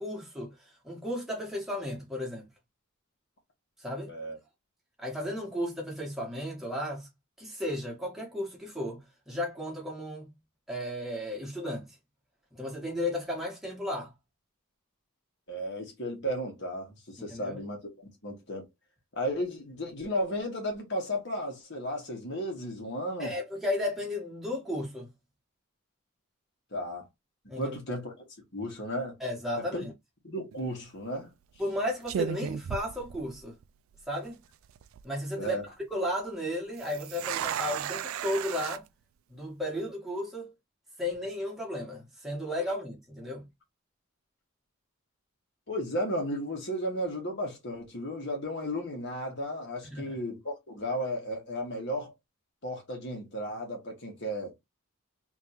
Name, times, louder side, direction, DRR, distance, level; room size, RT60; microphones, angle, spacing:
voice 1, 0.0-2.5 3.8-4.1 5.0-7.1 7.4-10.3 10.7-11.9 12.5-14.1 17.2-17.6 23.2-25.1 27.5-27.8 29.2-29.9 31.6-33.5 34.1-34.4 35.0-35.6 35.9-38.8 39.3-40.5 41.0-43.4 49.8-50.2, left 1 dB, ahead, 1.4 m, -34 dB
voice 2, 15.5-18.6 19.1-23.3 26.7-27.1 27.5-28.1 28.5-29.2 29.5-29.8 30.2-31.3 35.4-35.6 45.7-52.1 52.6-54.5, equal, 55° left, 1.7 m, -34 dB
sound 1, 30.5-30.8 31.6-31.7 32.1-33.6 33.9-34.0 34.6-35.0 36.8-38.8, right 9 dB, 80° right, 0.3 m, -35 dB
3.5 x 3.1 x 2.9 m
head